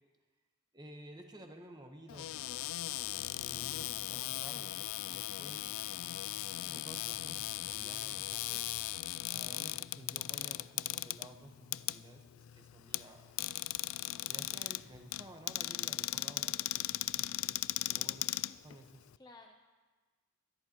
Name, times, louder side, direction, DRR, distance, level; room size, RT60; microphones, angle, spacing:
voice 1, 0.7-2.3 2.8-5.8 6.7-8.6 9.3-13.4 14.2-17.6 17.9-18.3 18.6-18.9, right 1 dB, 20° right, 4 dB, 1.2 m, -53 dB
Cupboard open or close, 2.1-19.2, left 16 dB, 85° left, 0.3 m, -38 dB
voice 2, 18.3-18.6 19.2-19.7, left 2 dB, 20° left, 2 dB, 0.7 m, -58 dB
24.0 x 11.0 x 3.0 m, 1.3 s
head